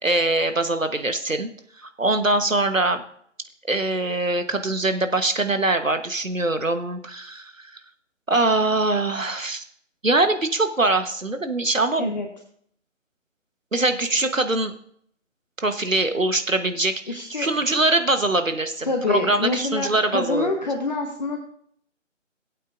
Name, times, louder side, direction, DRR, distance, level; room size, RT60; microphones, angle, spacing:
voice 1, 0.0-1.5 1.8-3.0 3.7-7.7 8.3-9.6 10.0-12.1 13.7-14.7 15.6-20.5, right 2 dB, 90° right, 8 dB, 1.3 m, -23 dB
voice 2, 17.1-17.5 18.8-21.4, left 3 dB, 35° left, 2 dB, 1.1 m, -26 dB
19.0 x 8.4 x 2.6 m, 0.65 s
figure-of-eight pair, 150°, 38 cm